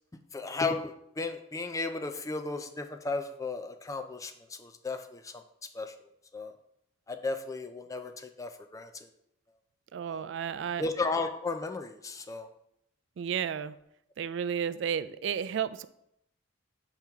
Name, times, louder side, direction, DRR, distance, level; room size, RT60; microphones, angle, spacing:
voice 1, 0.3-5.4 5.7-6.0 6.3-6.5 7.1-9.1 10.1-10.2 10.8-12.5, left 3 dB, 15° left, 7 dB, 0.4 m, -34 dB
voice 2, 9.9-10.8 13.2-13.7 14.2-15.9, right 8 dB, 65° right, 15 dB, 0.3 m, -32 dB
7.2 x 4.5 x 3.5 m, 0.76 s
head